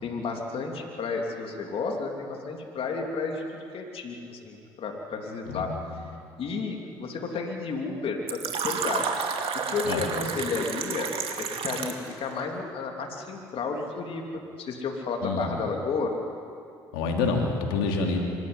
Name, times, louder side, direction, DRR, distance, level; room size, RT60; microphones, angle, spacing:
voice 1, 0.0-5.7 6.4-9.1 9.5-11.1 11.4-16.1, left 4 dB, 55° left, 1 dB, 3.1 m, -32 dB
voice 2, 5.5-5.9 9.8-10.2 15.2-15.5 16.9-18.2, left 4 dB, 85° left, 1 dB, 3.1 m, -28 dB
Fill (with liquid), 8.3-12.1, right 6 dB, 55° right, 2.5 m, -31 dB
25.0 x 14.0 x 9.8 m, 2.4 s
hypercardioid pair, 65°, 11 cm